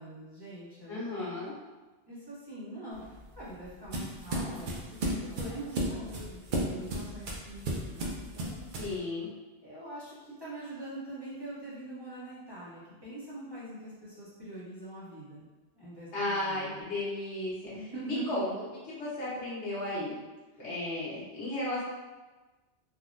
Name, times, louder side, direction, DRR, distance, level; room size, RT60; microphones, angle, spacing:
voice 1, 0.0-1.3 2.1-8.6 9.6-15.5 15.7-16.8 17.7-18.4 20.5-20.6, right 1 dB, 25° right, -11 dB, 0.8 m, -43 dB
voice 2, 0.9-1.5 8.8-9.3 16.1-17.7 18.0-18.5 18.9-20.2 20.6-21.8, left 2 dB, 80° left, -8 dB, 1.3 m, -34 dB
sound 1, 2.9-9.0, right 1 dB, 55° right, 0.6 m, -34 dB
3.6 x 2.1 x 2.4 m, 1.2 s
omnidirectional pair, 1.1 m